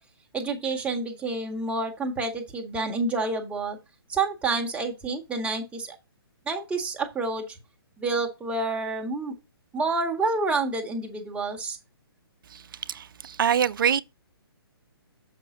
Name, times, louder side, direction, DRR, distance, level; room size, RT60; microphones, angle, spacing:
voice 1, 0.3-3.8 4.1-6.0 6.4-7.6 8.0-9.3 9.7-11.8, right 3 dB, 10° right, 1.6 m, -28 dB
voice 2, 12.9-14.0, right 8 dB, 55° right, 0.5 m, -24 dB
7.6 x 5.8 x 3.8 m
figure-of-eight pair, 135°, 13 cm